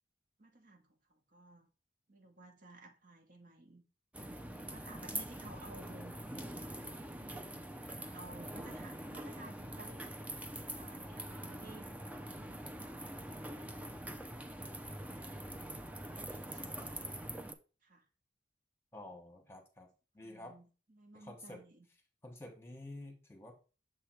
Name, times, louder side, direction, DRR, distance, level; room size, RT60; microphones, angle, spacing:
voice 1, 0.4-1.7 2.1-3.8 4.6-6.2 6.7-7.5 7.9-10.1 10.5-11.9 12.1-14.3 16.2-17.1 17.8-18.1 20.2-21.9, right 2 dB, 50° right, 1.1 m, -56 dB
sound 1, 4.1-17.5, right 1 dB, 10° right, 0.5 m, -44 dB
voice 2, 18.9-19.9 20.1-20.5 21.1-21.6 22.2-23.5, left 1 dB, 15° left, 1.1 m, -49 dB
6.8 x 3.3 x 4.4 m
head